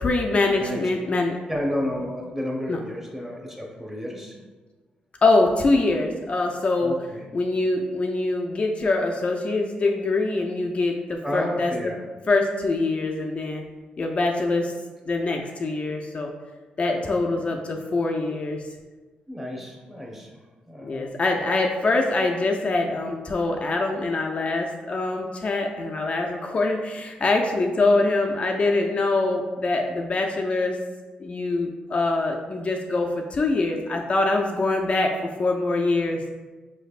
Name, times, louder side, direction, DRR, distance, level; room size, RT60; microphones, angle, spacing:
voice 1, 0.0-1.4 2.7-2.8 5.2-7.0 7.3-11.7 12.3-13.6 14.0-14.7 15.1-16.3 16.8-18.6 20.8-30.8 31.2-36.2, left 2 dB, 40° left, 2 dB, 0.4 m, -24 dB
voice 2, 1.5-4.4 6.8-7.3 11.2-12.0 16.9-17.2 17.7-17.8 19.3-20.4 20.7-21.1, left 1 dB, 10° right, -2 dB, 1.0 m, -31 dB
4.6 x 3.2 x 2.4 m, 1.3 s
cardioid pair, 70°, 3 cm